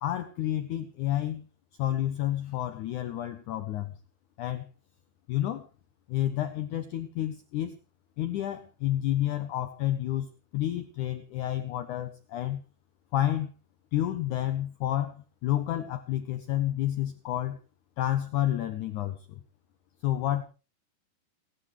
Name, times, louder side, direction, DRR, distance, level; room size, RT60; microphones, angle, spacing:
voice 1, 0.0-1.5 1.8-4.0 4.4-4.7 5.3-5.7 6.1-7.8 8.2-12.6 13.1-13.5 13.9-17.6 18.0-19.4 20.0-20.4, left 13 dB, 85° left, 10 dB, 1.7 m, -30 dB
29.0 x 9.9 x 3.1 m, 0.32 s
omnidirectional pair, 4.7 m